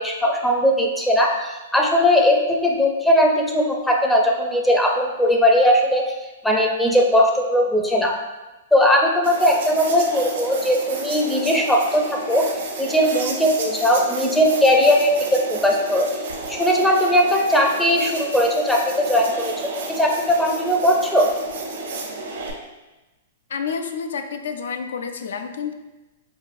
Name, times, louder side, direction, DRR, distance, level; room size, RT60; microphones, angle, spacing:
voice 1, 0.0-6.0 6.4-8.1 8.7-12.5 12.8-16.1 16.5-21.3, equal, 5° left, 0 dB, 0.4 m, -19 dB
sound 1, 9.2-22.5, right 3 dB, 75° right, 0.8 m, -32 dB
voice 2, 23.5-25.7, left 6 dB, 80° left, 7 dB, 0.4 m, -29 dB
4.8 x 2.4 x 2.6 m, 1.1 s
hypercardioid pair, 125°, 0 cm